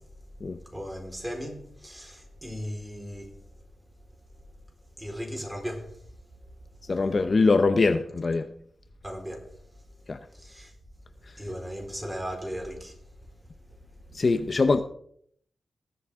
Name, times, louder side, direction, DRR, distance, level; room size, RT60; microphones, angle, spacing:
voice 1, 0.7-3.4 5.0-5.9 9.0-9.4 10.3-10.7 11.4-13.0, equal, 10° right, 4.2 m, -36 dB
voice 2, 6.9-8.5 10.1-10.2 14.2-14.8, left 3 dB, 45° left, 0.7 m, -22 dB
19.5 x 8.0 x 3.6 m
wide cardioid pair, 85°, 0 cm